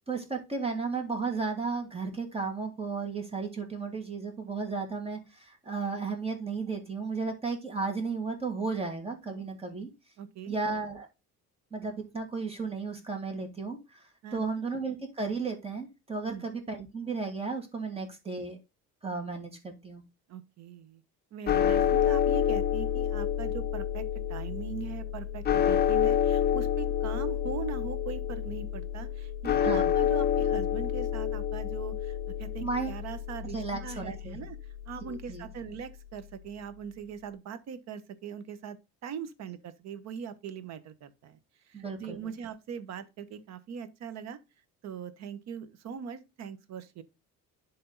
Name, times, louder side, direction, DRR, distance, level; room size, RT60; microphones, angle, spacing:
voice 1, 0.1-9.9 10.5-11.1 11.7-18.6 19.0-20.0 29.6-29.9 32.6-33.0 33.5-34.4 35.0-35.5 41.7-42.3, right 4 dB, 20° right, 2.5 m, -34 dB
voice 2, 9.3-9.7 10.2-10.6 14.2-14.5 16.3-16.4 20.3-21.0 21.3-34.6 34.9-41.4 41.7-44.4 44.8-47.0, right 7 dB, 60° right, 1.2 m, -41 dB
sound 1, 21.5-35.7, left 9 dB, 30° left, 0.7 m, -29 dB
11.0 x 3.7 x 4.0 m
cardioid pair, 125°, 31 cm